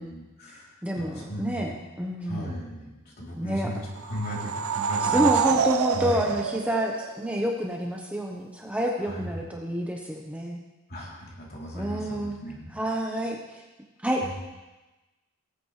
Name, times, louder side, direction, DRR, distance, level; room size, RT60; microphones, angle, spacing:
voice 1, 0.0-1.7 2.2-5.6 5.9-6.3 9.0-9.4 10.9-12.7 14.2-14.3, equal, 50° left, -4 dB, 3.1 m, -36 dB
voice 2, 0.8-1.7 2.0-2.5 3.4-3.7 5.0-10.6 11.7-12.4 12.7-13.6 14.0-14.3, equal, 5° right, 0 dB, 0.9 m, -28 dB
sound 1, 4.0-7.5, right 7 dB, 70° right, 0.5 m, -27 dB
18.0 x 8.6 x 3.2 m, 1.1 s
head